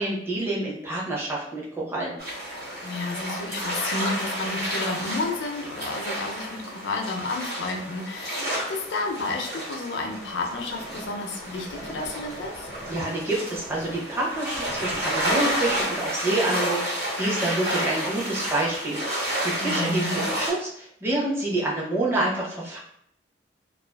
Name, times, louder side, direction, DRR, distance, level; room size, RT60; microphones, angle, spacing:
voice 1, 0.0-2.2 12.9-19.0 19.4-22.8, right 2 dB, 15° right, -5 dB, 0.6 m, -27 dB
sound 1, 2.2-20.5, equal, 55° right, 1.0 m, -31 dB
voice 2, 2.8-12.7 19.6-20.3, left 3 dB, 75° left, 2 dB, 0.4 m, -31 dB
sound 2, 10.1-16.3, right 1 dB, 85° right, 1.4 m, -44 dB
2.4 x 2.3 x 2.2 m, 0.70 s
head